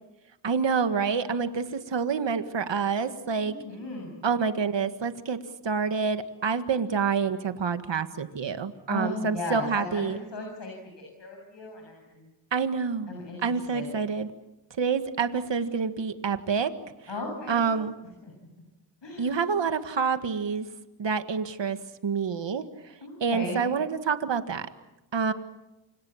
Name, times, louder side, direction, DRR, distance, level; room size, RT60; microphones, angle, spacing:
voice 1, 0.4-3.6 4.2-5.4 5.6-10.2 12.5-13.1 13.4-14.3 14.7-16.7 17.0-17.1 17.5-17.9 19.2-20.7 21.0-24.7 25.1-25.3, right 5 dB, 80° right, 9 dB, 1.8 m, -27 dB
voice 2, 3.4-4.2 8.9-12.3 13.1-13.4 13.7-13.9 17.1-17.6 19.0-19.4 23.0-23.6, left 2 dB, 75° left, 1 dB, 7.5 m, -36 dB
29.0 x 26.0 x 7.3 m, 0.98 s
cardioid pair, 55°, 43 cm